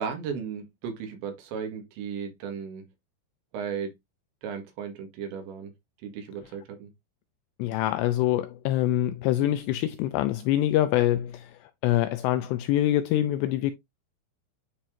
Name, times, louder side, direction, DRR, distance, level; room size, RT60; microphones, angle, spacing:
voice 1, 0.0-2.9 3.5-3.9 4.4-5.7 6.0-6.9, right 6 dB, 75° right, 3.8 m, -35 dB
voice 2, 7.6-11.5 11.8-13.7, left 13 dB, 85° left, 2.5 m, -25 dB
10.5 x 4.4 x 2.6 m
omnidirectional pair, 5.3 m